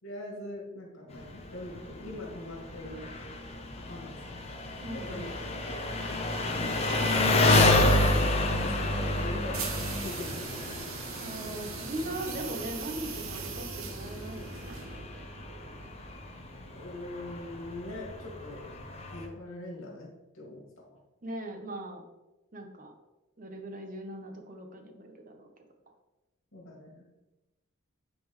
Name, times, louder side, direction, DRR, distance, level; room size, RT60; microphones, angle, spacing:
voice 1, 0.0-3.1 3.9-4.1 4.9-5.8 8.0-8.1 8.4-9.7 10.0-10.9 16.7-18.6 19.1-20.1 20.3-20.6 26.5-27.0, left 1 dB, 85° left, -2 dB, 2.4 m, -42 dB
Engine, 1.1-19.3, left 2 dB, 30° left, 0.8 m, -30 dB
voice 2, 4.8-5.3 11.2-15.9 21.2-22.0 22.5-22.9 23.4-25.5, right 1 dB, 40° right, 4 dB, 0.9 m, -40 dB
sound 1, 9.5-15.1, right 5 dB, 85° right, 0.8 m, -40 dB
9.5 x 4.3 x 3.2 m, 1.0 s
head